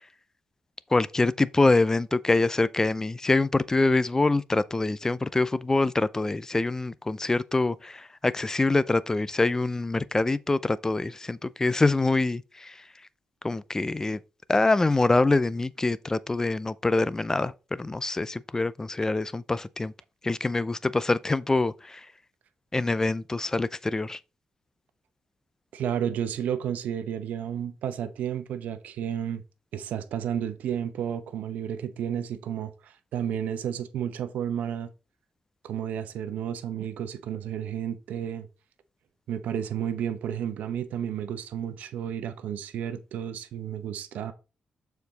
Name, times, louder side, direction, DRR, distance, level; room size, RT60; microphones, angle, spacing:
voice 1, 0.9-12.7 13.4-14.2 14.5-19.9 20.2-22.1 22.7-24.2, left 2 dB, 20° left, 0.5 m, -25 dB
voice 2, 25.7-29.4 29.7-34.9 35.6-38.5 39.3-44.3, right 9 dB, 85° right, 0.8 m, -32 dB
6.8 x 4.5 x 4.0 m
cardioid pair, 75°, 3 cm